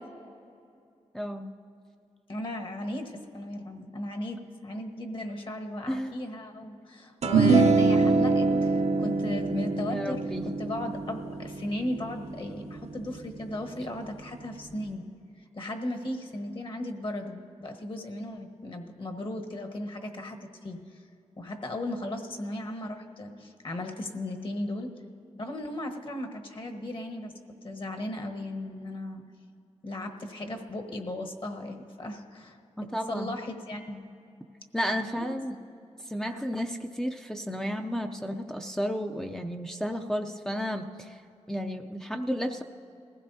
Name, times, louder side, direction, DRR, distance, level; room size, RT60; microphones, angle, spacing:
voice 1, 1.1-1.5 5.9-6.1 9.9-10.4 32.8-33.3 34.7-35.6 36.1-41.2 41.5-42.6, equal, 5° left, 3 dB, 0.5 m, -32 dB
voice 2, 2.3-10.2 10.6-15.0 15.5-21.0 21.4-24.9 25.4-27.3 27.6-29.2 29.8-32.6 33.1-34.1 35.2-35.3, left 1 dB, 45° left, 4 dB, 1.3 m, -36 dB
sound 1, 7.2-13.8, right 3 dB, 65° right, 0.7 m, -25 dB
20.5 x 15.0 x 2.7 m, 2.5 s
wide cardioid pair, 95°, 12 cm